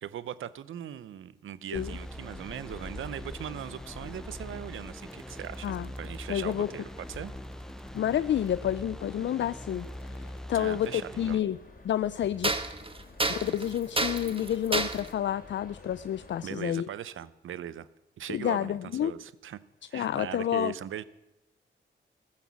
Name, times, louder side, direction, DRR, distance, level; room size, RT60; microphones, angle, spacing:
voice 1, 0.0-7.3 10.5-11.4 16.4-17.9 18.2-19.6 19.9-21.0, right 10 dB, 90° right, 16 dB, 0.7 m, -39 dB
sound 1, 1.8-16.4, left 3 dB, 45° left, 3.6 m, -50 dB
sound 2, 1.8-11.4, equal, 5° left, 0.7 m, -43 dB
sound 3, 5.1-6.5 7.8-7.9 10.0-10.1 10.9-11.0 12.4-15.1, right 2 dB, 25° right, 1.6 m, -31 dB
voice 2, 6.3-6.7 7.9-11.6 11.8-12.5 13.3-16.9 18.3-19.1 19.9-20.7, left 10 dB, 70° left, 16 dB, 0.5 m, -29 dB
14.5 x 13.0 x 7.2 m, 0.91 s
cardioid pair, 55°, 20 cm